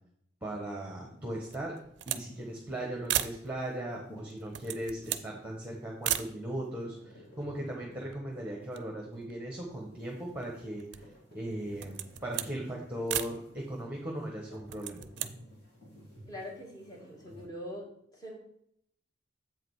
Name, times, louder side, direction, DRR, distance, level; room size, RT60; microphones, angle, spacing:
voice 1, 0.4-1.7 2.1-11.1 11.3-15.1, right 1 dB, 5° right, -2 dB, 1.2 m, -38 dB
sound 1, 0.8-17.5, equal, 55° left, 2.9 m, -55 dB
sound 2, 1.5-2.3 2.6-2.7 3.0-3.4 4.3-5.3 6.0-6.3 7.1-7.2 7.4-8.3 8.6-9.9 10.4-11.2 11.7-12.5 13.1-13.4 14.5-15.3, right 12 dB, 60° right, 0.4 m, -35 dB
voice 2, 16.3-17.9 18.1-18.4, equal, 20° left, -1 dB, 1.7 m, -43 dB
7.8 x 5.0 x 4.8 m, 0.70 s
head